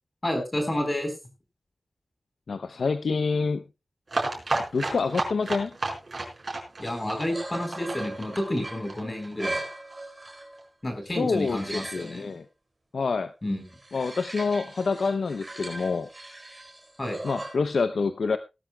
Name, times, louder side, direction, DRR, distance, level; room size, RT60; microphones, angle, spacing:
voice 1, 0.2-1.1 6.8-9.6 10.8-12.3 13.4-13.6 17.0-17.2, left 1 dB, 25° left, 5 dB, 4.1 m, -30 dB
voice 2, 2.5-3.6 4.7-5.7 11.2-12.4 12.9-13.3 13.9-16.1 17.2-18.4, left 4 dB, 90° left, 10 dB, 0.6 m, -27 dB
sound 1, 4.1-9.7 9.9-10.0 10.3-10.4 10.6-10.7, right 2 dB, 45° right, 4.6 m, -31 dB
sound 2, 6.8-10.7 11.1-12.3 13.6-17.5, right 2 dB, 25° right, 4.3 m, -39 dB
18.5 x 13.0 x 2.3 m, 0.27 s
wide cardioid pair, 105°, 0 cm